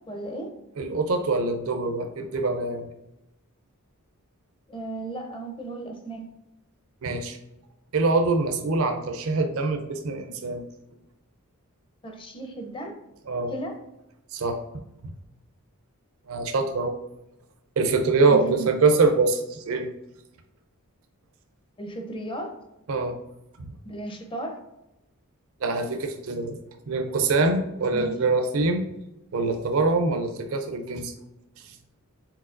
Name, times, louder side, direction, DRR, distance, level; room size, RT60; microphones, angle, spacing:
voice 1, 0.1-0.5 4.7-6.3 12.0-13.0 13.5-13.8 18.3-18.8 21.8-22.5 23.8-24.6 27.9-28.2, right 2 dB, 25° left, 4 dB, 0.6 m, -35 dB
voice 2, 0.8-2.9 7.0-7.4 7.9-10.6 13.3-13.5 14.3-14.6 16.3-16.9 17.8-19.9 22.9-23.2 23.6-23.7 25.6-26.6 26.9-28.9 29.3-31.1 31.6-31.7, right 3 dB, 65° right, 5 dB, 0.5 m, -24 dB
4.6 x 3.9 x 2.5 m, 0.90 s
head